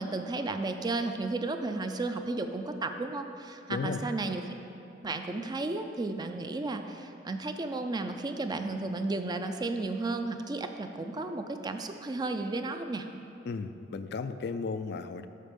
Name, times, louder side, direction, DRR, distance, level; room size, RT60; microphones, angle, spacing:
voice 1, 0.0-4.5 5.0-13.1, right 2 dB, 20° right, 7 dB, 0.4 m, -33 dB
voice 2, 3.7-4.3 13.4-15.3, left 4 dB, 60° left, 10 dB, 0.3 m, -35 dB
7.5 x 6.3 x 5.3 m, 2.7 s
head